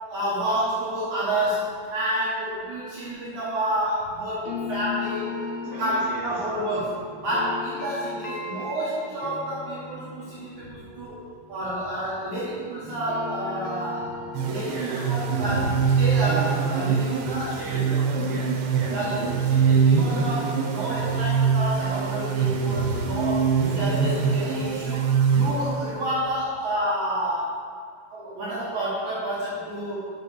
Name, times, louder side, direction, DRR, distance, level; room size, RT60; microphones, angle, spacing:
voice 1, 0.1-5.3 5.6-11.2 11.5-14.1 14.4-17.8 18.9-27.5 28.1-30.1, right 1 dB, 60° right, -9 dB, 2.6 m, -29 dB
sound 1, 4.4-12.5 12.8-17.8, left 5 dB, 80° left, 1.2 m, -38 dB
voice 2, 5.6-6.5 14.7-15.1 17.5-19.0 20.8-20.9, right 1 dB, 40° right, -6 dB, 2.7 m, -37 dB
sound 2, 14.3-26.1, right 6 dB, 85° right, 2.8 m, -23 dB
6.7 x 6.5 x 6.9 m, 2.1 s
omnidirectional pair, 4.2 m